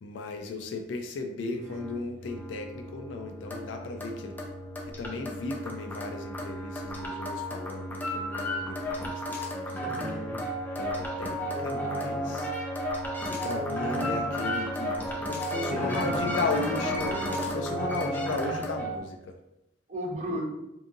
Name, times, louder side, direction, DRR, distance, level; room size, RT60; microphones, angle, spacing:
voice 1, 0.0-4.4 4.9-9.8 10.8-12.5 13.2-19.4, left 3 dB, 90° left, 5 dB, 0.3 m, -35 dB
voice 2, 1.5-1.8 9.7-10.5 15.7-16.4 19.9-20.4, equal, 40° right, -1 dB, 0.6 m, -36 dB
sound 1, 1.6-19.0, equal, 10° left, 0.4 m, -33 dB
2.6 x 2.5 x 2.6 m, 0.89 s
head